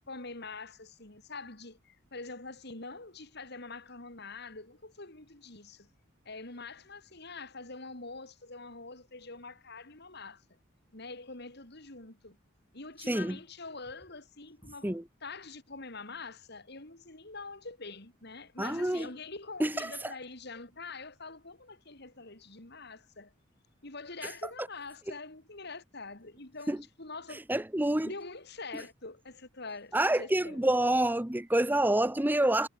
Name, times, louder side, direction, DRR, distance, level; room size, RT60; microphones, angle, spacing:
voice 1, 0.0-5.9 6.3-10.4 10.9-12.4 12.7-23.3 23.8-27.4 28.0-30.7, left 3 dB, 55° left, 3.7 m, -45 dB
voice 2, 13.1-13.4 14.8-15.0 18.6-19.1 19.6-20.1 24.2-24.3 26.7-26.8 27.5-28.1 29.9-32.7, right 1 dB, 10° right, 0.8 m, -27 dB
head